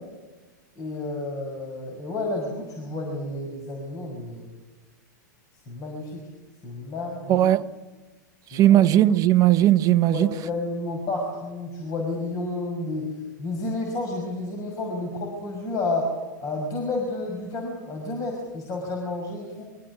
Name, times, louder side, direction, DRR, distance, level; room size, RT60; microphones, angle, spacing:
voice 1, 0.8-4.5 5.7-6.2 6.6-7.5 8.5-8.8 10.1-13.0 13.4-16.1 16.4-19.6, left 2 dB, 35° left, 5.9 m, -31 dB
voice 2, 7.3-7.6 8.5-10.3, right 12 dB, 35° right, 1.0 m, -18 dB
23.0 x 16.0 x 8.4 m
hypercardioid pair, 105°, 10 cm